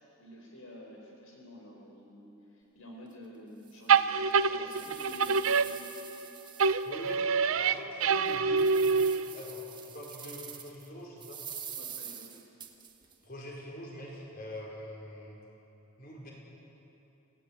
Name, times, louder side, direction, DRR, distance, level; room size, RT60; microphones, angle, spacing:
voice 1, 0.2-5.9 11.7-12.4, left 1 dB, 80° left, 0 dB, 4.4 m, -49 dB
Strange rattle, 3.1-3.2 3.7-3.8 4.3-7.1 7.6-7.7 8.2-10.9 11.2-13.1, right 8 dB, 20° right, 1.4 m, -45 dB
sound 1, 3.9-6.3 6.6-9.4, right 5 dB, 80° right, 0.7 m, -26 dB
voice 2, 6.8-7.2 7.6-11.4 13.2-15.4 16.0-16.3, equal, 45° left, -3 dB, 5.0 m, -44 dB
29.0 x 17.0 x 8.4 m, 3.0 s
head